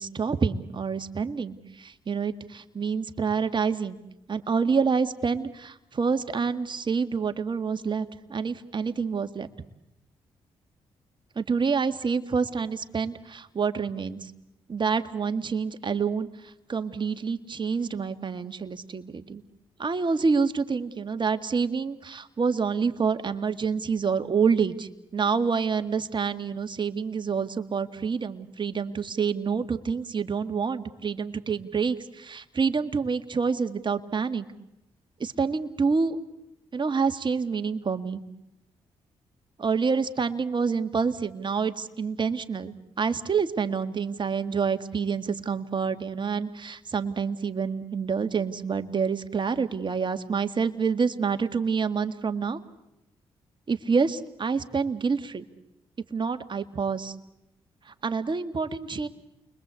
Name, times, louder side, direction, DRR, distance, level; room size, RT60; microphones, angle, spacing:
voice 1, 0.0-4.0 4.3-9.5 11.4-14.3 14.7-19.4 19.8-34.5 35.2-36.2 36.7-38.2 39.6-52.6 53.7-55.4 56.1-57.1 58.0-59.1, right 5 dB, 45° right, 8 dB, 2.0 m, -27 dB
29.0 x 22.5 x 8.4 m, 0.87 s
supercardioid pair, 55°, 11 cm